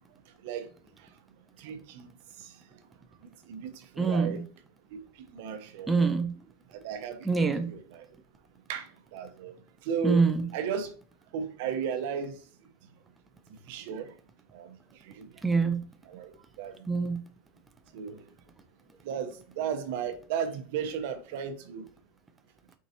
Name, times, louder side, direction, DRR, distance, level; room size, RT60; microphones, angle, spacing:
voice 1, 1.6-2.1 2.4-2.6 3.5-4.4 4.9-5.0 5.3-5.9 6.7-8.1 8.7-9.5 9.8-10.9 11.3-12.4 13.7-14.1 14.5-15.3 16.0-16.9 17.9-18.2 19.0-21.8, right 7 dB, 65° right, 0.8 m, -35 dB
voice 2, 4.0-4.4 5.9-6.3 7.3-7.7 10.0-10.4 15.4-15.8 16.9-17.2, right 4 dB, 10° right, 0.5 m, -25 dB
4.6 x 3.9 x 2.7 m
supercardioid pair, 135°, 0 cm